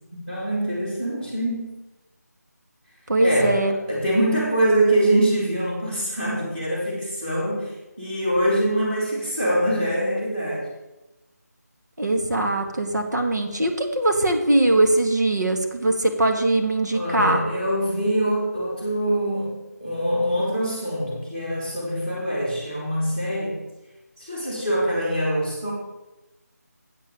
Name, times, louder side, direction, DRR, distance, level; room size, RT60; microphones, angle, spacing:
voice 1, 0.1-1.8 3.2-10.7 16.9-23.7 24.2-25.7, right 1 dB, 15° right, -5 dB, 3.1 m, -24 dB
voice 2, 3.1-3.8 12.0-17.4, right 2 dB, 80° right, 3 dB, 2.1 m, -21 dB
8.4 x 7.1 x 7.8 m, 1.0 s
figure-of-eight pair, 175°, 9 cm